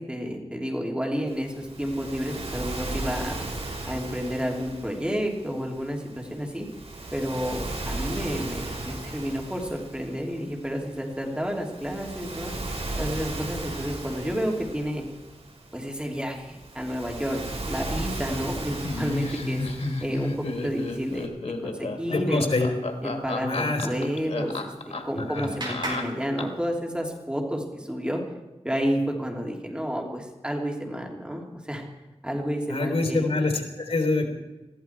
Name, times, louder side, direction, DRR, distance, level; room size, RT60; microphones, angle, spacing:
voice 1, 0.1-3.4 3.9-6.6 7.1-12.5 13.0-15.0 15.7-17.4 17.7-19.6 20.0-21.3 21.6-22.5 23.0-24.7 25.0-28.2 28.6-31.9 32.2-33.3, equal, 10° right, 0 dB, 3.0 m, -30 dB
Waves surf, 1.3-21.3, right 2 dB, 75° right, 3.9 m, -37 dB
Laughter, 18.8-26.7, left 2 dB, 90° left, 1.6 m, -32 dB
voice 2, 22.1-22.7 23.4-23.9 25.2-25.5 32.7-34.2, left 3 dB, 75° left, 4 dB, 3.4 m, -25 dB
Clapping, 24.5-27.1, right 1 dB, 45° right, 4.8 m, -39 dB
21.0 x 15.0 x 4.6 m, 1.1 s
wide cardioid pair, 85°, 11 cm